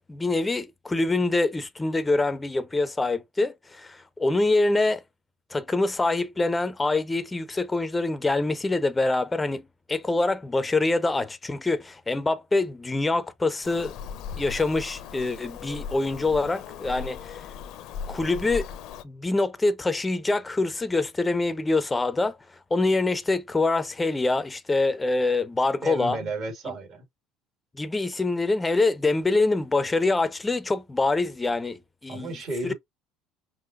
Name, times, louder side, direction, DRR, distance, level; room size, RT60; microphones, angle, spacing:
voice 1, 0.0-5.0 5.5-13.9 14.4-17.4 18.1-18.7 19.0-22.4 22.7-26.2 27.7-32.3 32.6-32.7, left 2 dB, 15° left, 0.6 m, -25 dB
Bird vocalization bird call bird song, 13.6-19.0, left 7 dB, 60° left, 0.6 m, -38 dB
voice 2, 25.8-27.1 32.1-32.7, right 2 dB, 50° right, 2.3 m, -33 dB
5.5 x 2.9 x 2.5 m
hypercardioid pair, 65°, 0 cm